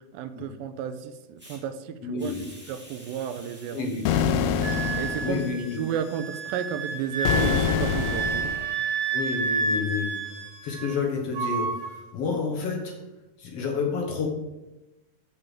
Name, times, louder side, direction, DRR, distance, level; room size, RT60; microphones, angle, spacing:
voice 1, 0.1-2.3 2.7-3.9 4.9-5.4 5.7-8.6, right 8 dB, 85° right, 10 dB, 2.4 m, -33 dB
Hiss, 1.4-1.6 2.2-7.3, equal, 5° right, 1.2 m, -52 dB
voice 2, 2.0-2.5 3.7-4.0 5.2-5.8 9.1-13.0 13.4-14.3, left 5 dB, 60° left, 1 dB, 1.8 m, -30 dB
sound 1, 4.1-5.5 7.2-8.7, left 7 dB, 85° left, 2.4 m, -25 dB
Wind instrument woodwind instrument, 4.6-11.0 11.3-12.0, right 4 dB, 60° right, 3.4 m, -30 dB
6.9 x 6.7 x 7.4 m, 1.0 s
omnidirectional pair, 4.1 m